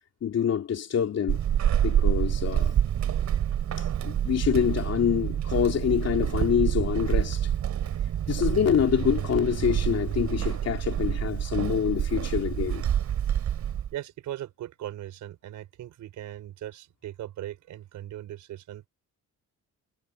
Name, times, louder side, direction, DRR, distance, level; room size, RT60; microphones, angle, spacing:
voice 1, 0.2-1.4 1.8-2.7 3.8-7.5 8.3-12.8, left 8 dB, 55° left, 3.1 m, -26 dB
Walk footsteps / Squeak, 1.3-13.9, right 10 dB, 65° right, 2.7 m, -27 dB
voice 2, 13.9-18.8, right 13 dB, 80° right, 5.3 m, -39 dB
cardioid pair, 90°, 30 cm